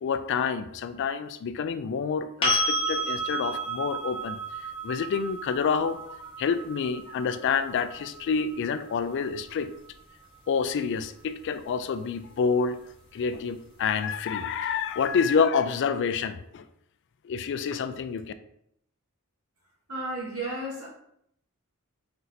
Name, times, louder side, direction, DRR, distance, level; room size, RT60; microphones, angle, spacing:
voice 1, 0.0-4.4 4.8-6.0 6.4-9.7 10.5-12.8 13.1-16.6 17.2-18.3, left 6 dB, 55° left, 11 dB, 0.3 m, -28 dB
sound 1, 2.4-10.2 13.1-13.2, right 1 dB, 25° left, 1.0 m, -32 dB
voice 2, 19.9-20.9, right 1 dB, 85° right, -3 dB, 1.5 m, -33 dB
4.3 x 2.6 x 4.0 m, 0.74 s
head